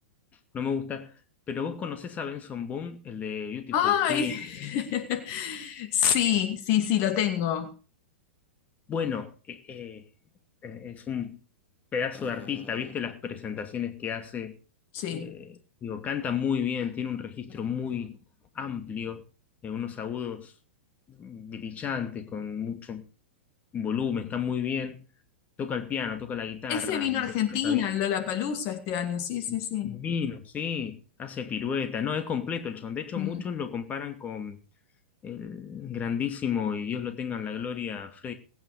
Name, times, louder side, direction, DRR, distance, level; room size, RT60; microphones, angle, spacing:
voice 1, 0.5-1.1 1.5-4.3 8.9-10.0 10.6-11.4 11.9-14.5 15.1-18.2 18.5-19.2 19.6-20.5 21.1-23.0 23.7-25.0 25.6-27.8 29.5-29.6 29.8-34.6 35.2-38.3, left 7 dB, 25° left, 2.5 m, -32 dB
voice 2, 3.7-7.7 14.9-15.3 26.7-30.0 33.2-33.4, left 9 dB, 45° left, 2.3 m, -27 dB
19.0 x 9.5 x 5.1 m
hypercardioid pair, 110°, 6 cm